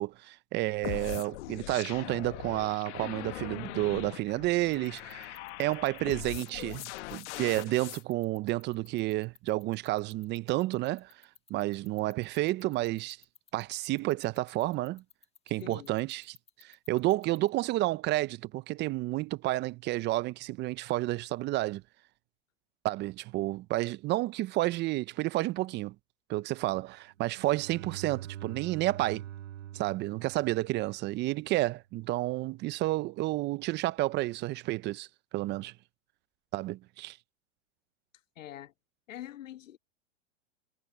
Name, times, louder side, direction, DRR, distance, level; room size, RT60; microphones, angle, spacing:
voice 1, 0.0-11.1 11.5-13.2 13.5-15.0 15.5-21.8 22.8-25.9 26.3-29.2 29.7-35.1 35.3-35.7 36.5-37.2, right 18 dB, 30° right, 0.5 m, -31 dB
sound 1, 0.8-8.0, left 19 dB, 65° left, 1.1 m, -41 dB
sound 2, 4.6-17.5, left 6 dB, 15° left, 1.6 m, -56 dB
voice 2, 15.6-15.9 38.4-38.7 39.1-39.8, left 12 dB, 85° left, 1.5 m, -44 dB
Bowed string instrument, 27.3-31.2, right 12 dB, 80° right, 4.2 m, -44 dB
hypercardioid pair, 120°, 38 cm